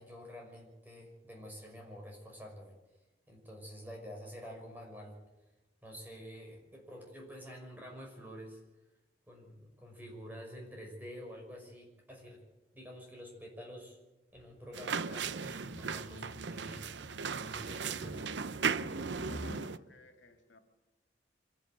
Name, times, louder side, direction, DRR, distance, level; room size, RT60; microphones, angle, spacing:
voice 1, 0.0-2.7 3.3-5.2 5.8-8.6 9.3-12.4 12.7-14.0 14.3-17.1 17.4-18.2, equal, 10° right, 0 dB, 5.9 m, -48 dB
sound 1, 14.3-19.6, equal, 40° left, 4.1 m, -49 dB
sound 2, 14.7-19.8, right 5 dB, 80° right, 0.7 m, -37 dB
voice 2, 19.2-20.6, left 2 dB, 90° left, 6 dB, 2.6 m, -57 dB
25.5 x 11.5 x 9.5 m, 1.0 s
head